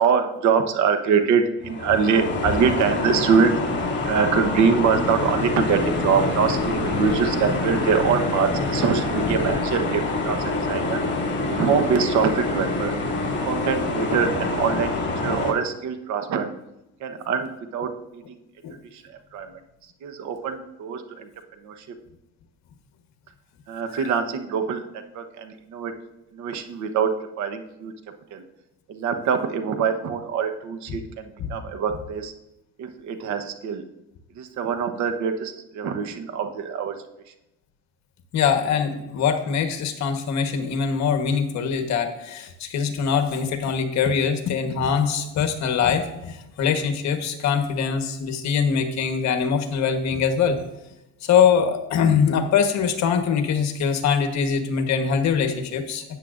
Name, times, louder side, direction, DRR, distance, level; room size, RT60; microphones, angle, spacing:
voice 1, 0.0-3.6 4.0-11.0 11.5-12.9 13.4-14.9 15.2-16.5 17.0-18.4 18.9-21.3 21.6-22.0 23.7-25.9 26.3-27.9 28.3-28.4 28.9-32.3 32.8-33.8 34.3-37.0 37.3-37.4, right 6 dB, 60° right, 7 dB, 1.1 m, -24 dB
sound 1, 1.6-15.5, left 2 dB, 35° left, 2.6 m, -26 dB
voice 2, 38.3-50.6 51.2-56.0, left 6 dB, 55° left, 7 dB, 1.3 m, -23 dB
13.0 x 8.8 x 2.5 m, 0.92 s
cardioid pair, 110°, 32 cm